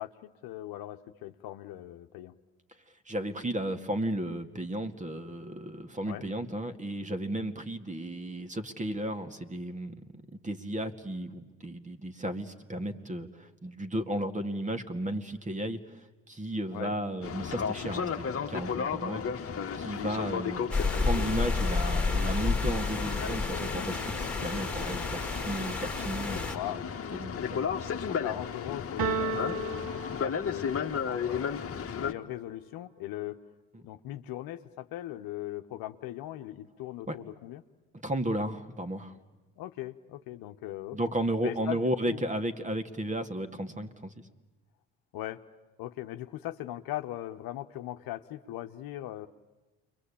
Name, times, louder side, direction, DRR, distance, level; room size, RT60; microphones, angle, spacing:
voice 1, 0.0-2.4 6.1-6.2 16.7-16.9 20.6-21.3 26.5-26.8 28.0-33.4 33.8-37.6 39.6-41.0 41.4-42.2 45.1-45.4 45.8-49.3, left 14 dB, 65° left, 7 dB, 1.2 m, -39 dB
voice 2, 3.1-19.5 19.8-20.7 21.0-26.8 27.1-27.7 37.1-37.2 38.0-39.2 40.9-44.1, right 1 dB, 20° right, 8 dB, 2.2 m, -34 dB
Boat Water vehicle, 17.2-32.1, left 7 dB, 35° left, 1.7 m, -34 dB
sound 1, 20.7-26.6, left 3 dB, ahead, 2.6 m, -30 dB
sound 2, 29.0-30.9, right 4 dB, 65° right, 2.4 m, -33 dB
29.5 x 23.0 x 8.7 m, 1.2 s
hypercardioid pair, 70°, 38 cm